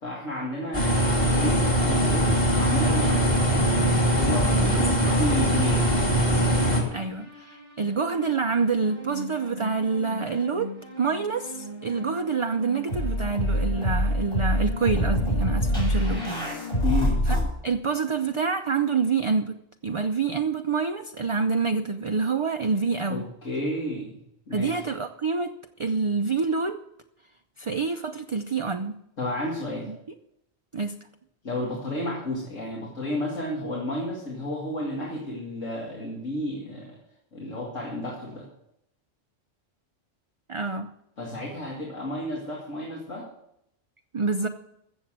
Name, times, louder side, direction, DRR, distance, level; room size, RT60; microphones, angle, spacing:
voice 1, 0.0-3.7 4.1-5.8 16.8-17.2 23.1-24.2 24.5-24.8 29.2-29.9 31.4-37.0 37.3-38.5 41.2-43.3, left 1 dB, 80° left, -3 dB, 2.6 m, -32 dB
sound 1, 0.7-6.8, equal, 35° left, 3.4 m, -22 dB
voice 2, 4.5-4.8 6.9-16.3 17.3-17.4 17.6-19.6 19.8-23.2 24.5-25.5 25.8-26.8 27.6-29.0 30.7-30.9 40.5-40.9 44.1-44.5, right 4 dB, 40° right, 6 dB, 0.5 m, -27 dB
sound 2, 5.1-6.2 6.9-17.4, equal, 50° left, 5.9 m, -29 dB
15.0 x 7.2 x 7.5 m, 0.79 s
omnidirectional pair, 1.3 m